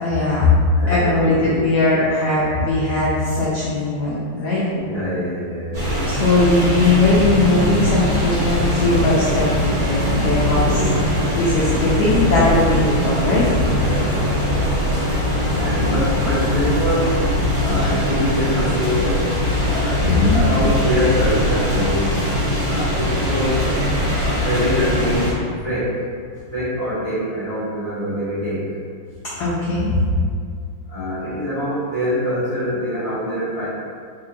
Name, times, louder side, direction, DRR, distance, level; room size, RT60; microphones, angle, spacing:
voice 1, 0.0-0.6 0.9-4.7 6.2-10.7 11.3-13.4 20.0-20.4 29.4-30.0, left 2 dB, 80° left, -7 dB, 0.9 m, -19 dB
voice 2, 0.7-2.0 4.7-6.0 10.3-11.1 13.6-14.8 15.5-17.1 17.6-19.2 19.7-22.2 22.7-23.6 24.2-25.3 25.6-26.0 26.5-28.6 30.9-33.7, equal, 40° right, -14 dB, 0.5 m, -24 dB
sound 1, 5.7-25.3, left 1 dB, 65° right, 2.2 m, -21 dB
4.1 x 2.8 x 2.4 m, 2.2 s
omnidirectional pair, 2.4 m